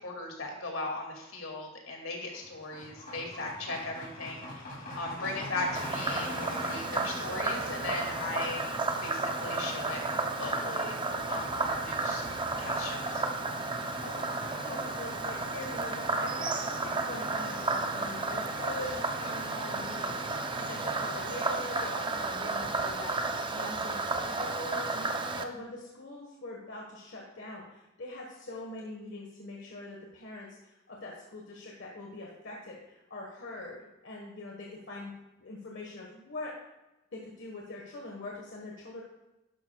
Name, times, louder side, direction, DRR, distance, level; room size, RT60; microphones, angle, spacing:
voice 1, 0.0-4.5 4.9-6.3 6.6-10.0 10.4-10.9 11.3-12.2 12.6-13.2, left 2 dB, 80° left, 1 dB, 2.3 m, -37 dB
sound 1, 2.1-21.5, left 1 dB, 45° left, 2.8 m, -43 dB
Frog, 5.8-25.4, right 3 dB, 25° right, 0.6 m, -33 dB
voice 2, 14.0-33.8 34.0-35.1 35.4-36.5 37.1-39.0, left 2 dB, 60° left, -2 dB, 1.4 m, -43 dB
11.5 x 11.5 x 2.3 m, 0.99 s
head